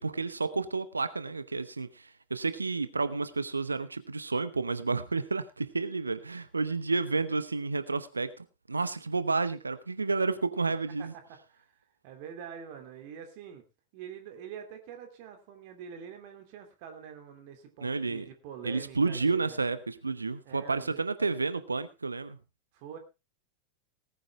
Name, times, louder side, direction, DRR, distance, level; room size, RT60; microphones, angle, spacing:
voice 1, 0.0-11.1 17.8-18.2 18.6-22.4, right 4 dB, 80° right, 13 dB, 0.9 m, -31 dB
voice 2, 11.0-13.6 13.9-19.6 20.4-21.0 22.7-23.0, right 8 dB, 45° right, 5 dB, 2.9 m, -45 dB
18.5 x 9.4 x 3.5 m, 0.27 s
figure-of-eight pair, 90°, 0 cm